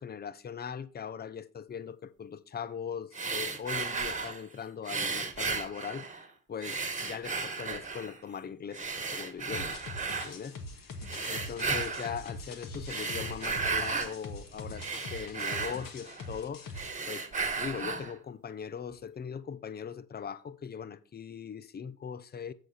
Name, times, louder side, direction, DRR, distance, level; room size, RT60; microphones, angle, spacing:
voice 1, 0.0-6.2 6.5-9.8 10.2-10.6 11.2-17.3 17.5-22.5, left 7 dB, 20° left, 0.6 m, -40 dB
sound 1, 3.1-4.4 4.8-6.3 6.6-8.2 8.7-10.3 11.0-12.2 12.7-14.1 14.5-16.4 16.7-18.1, right 4 dB, 15° right, 1.6 m, -34 dB
sound 2, 9.5-16.9, left 2 dB, 45° left, 1.7 m, -43 dB
7.7 x 4.9 x 5.5 m
hypercardioid pair, 60°, 48 cm